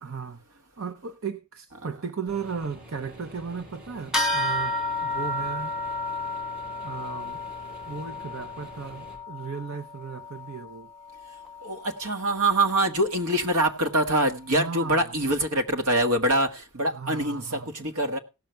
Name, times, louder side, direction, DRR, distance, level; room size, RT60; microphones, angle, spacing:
voice 1, 0.0-5.7 6.8-7.4 7.9-10.9 14.5-15.1 16.9-17.7, right 5 dB, 65° right, 0.7 m, -36 dB
sound 1, 2.3-9.2, equal, 45° right, 5.5 m, -47 dB
sound 2, 4.1-13.9, left 2 dB, 5° right, 1.5 m, -33 dB
voice 2, 11.6-18.2, right 1 dB, 85° right, 1.6 m, -24 dB
17.0 x 6.6 x 4.5 m
head